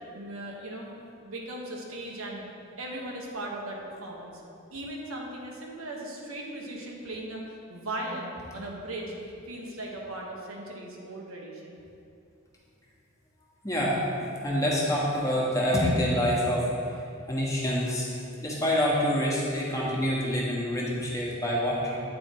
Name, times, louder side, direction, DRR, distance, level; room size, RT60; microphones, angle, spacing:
voice 1, 0.1-0.9 1.2-2.4 2.8-4.4 4.7-7.4 7.7-9.1 9.5-11.8, right 1 dB, 85° right, -1 dB, 1.2 m, -38 dB
voice 2, 13.6-14.1 14.4-18.1 18.4-22.0, equal, 15° left, -5 dB, 1.2 m, -27 dB
8.8 x 4.4 x 4.5 m, 2.6 s
head